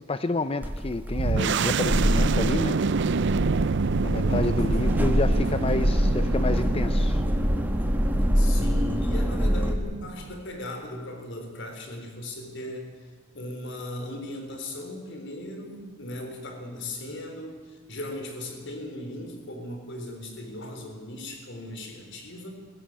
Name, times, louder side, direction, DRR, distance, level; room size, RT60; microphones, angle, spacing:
voice 1, 0.1-2.8 4.0-7.2, left 2 dB, 30° left, 12 dB, 0.6 m, -29 dB
sound 1, 0.6-9.7, equal, 10° right, 1.3 m, -25 dB
sound 2, 1.1-10.4, right 4 dB, 60° right, 0.5 m, -28 dB
voice 2, 1.4-1.7 4.2-4.8 6.6-6.7 8.3-22.5, left 1 dB, 60° left, 4 dB, 4.0 m, -38 dB
21.0 x 16.0 x 8.9 m, 1.5 s
head